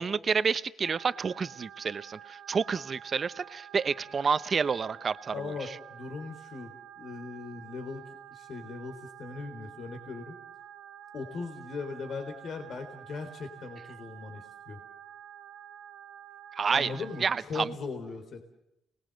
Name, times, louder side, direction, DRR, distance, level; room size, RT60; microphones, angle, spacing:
voice 1, 0.0-5.8 16.6-16.9 17.2-17.7, right 5 dB, 45° right, 15 dB, 1.0 m, -29 dB
sound 1, 0.8-17.4, right 9 dB, 90° right, 1.7 m, -49 dB
voice 2, 5.3-10.3 11.1-14.8 16.7-18.4, left 4 dB, 60° left, 5 dB, 3.6 m, -39 dB
30.0 x 20.0 x 7.8 m, 0.84 s
cardioid pair, 100°, 0 cm